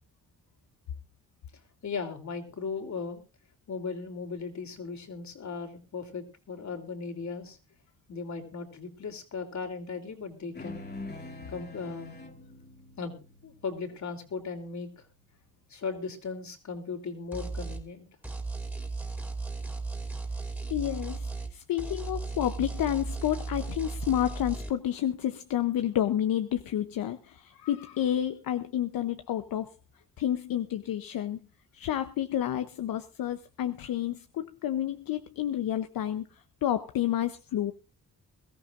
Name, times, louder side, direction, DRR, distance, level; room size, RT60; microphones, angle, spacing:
voice 1, 1.8-3.2 3.7-7.6 8.1-10.8 11.5-12.2 13.0-13.1 13.4-15.1 15.7-18.1, left 5 dB, 55° left, 4 dB, 3.3 m, -37 dB
sound 1, 10.5-15.3, left 2 dB, 30° left, 2.4 m, -45 dB
sound 2, 17.3-17.8 18.2-21.5 21.8-24.7, right 3 dB, 5° right, 2.8 m, -36 dB
voice 2, 20.7-29.7 30.2-31.4 31.7-36.3 36.6-37.7, left 11 dB, 80° left, 9 dB, 0.9 m, -30 dB
22.0 x 14.0 x 2.6 m, 0.30 s
cardioid pair, 80°, 34 cm